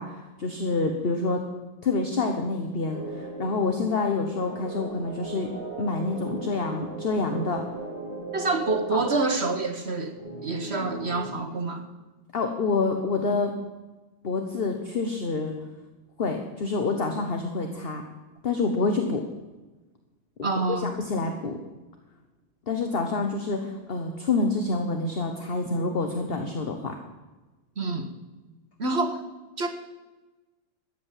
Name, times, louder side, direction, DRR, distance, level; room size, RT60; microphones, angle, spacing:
voice 1, 0.0-1.4 1.8-5.5 5.8-7.6 8.9-9.0 12.3-13.5 14.2-15.5 16.2-18.0 18.4-19.3 20.7-21.6 22.7-27.0, left 3 dB, 35° left, 4 dB, 1.1 m, -27 dB
sound 1, 2.8-11.3, right 2 dB, 70° left, 6.6 m, -38 dB
voice 2, 8.3-10.2 10.4-11.9 20.4-20.9 27.8-28.1 28.8-29.2 29.6-29.7, right 3 dB, 40° right, 6 dB, 1.2 m, -27 dB
14.0 x 9.0 x 7.4 m, 1.2 s
omnidirectional pair, 2.1 m